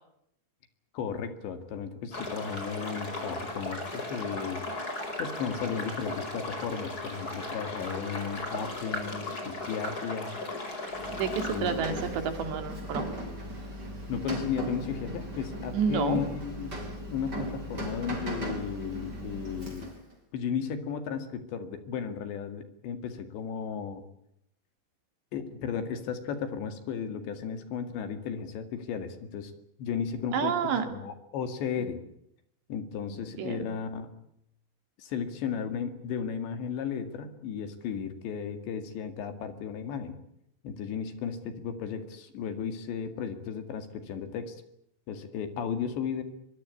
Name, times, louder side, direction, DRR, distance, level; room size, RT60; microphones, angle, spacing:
voice 1, 0.9-4.6 5.2-10.4 11.4-12.0 14.1-16.8 17.1-19.9 20.3-24.0 25.3-29.5 29.8-30.5 30.8-32.0 32.7-34.1 35.0-40.2 40.6-44.6 45.1-46.2, left 7 dB, 65° left, 9 dB, 4.1 m, -34 dB
sound 1, 2.1-11.6, left 2 dB, 20° left, 5.1 m, -36 dB
Rain, 10.9-20.1, right 1 dB, 20° right, 6.2 m, -37 dB
voice 2, 11.1-13.0 15.7-16.2 30.3-30.9 33.4-33.7, right 6 dB, 65° right, 8 dB, 4.4 m, -29 dB
24.0 x 23.0 x 8.4 m, 0.76 s
omnidirectional pair, 5.7 m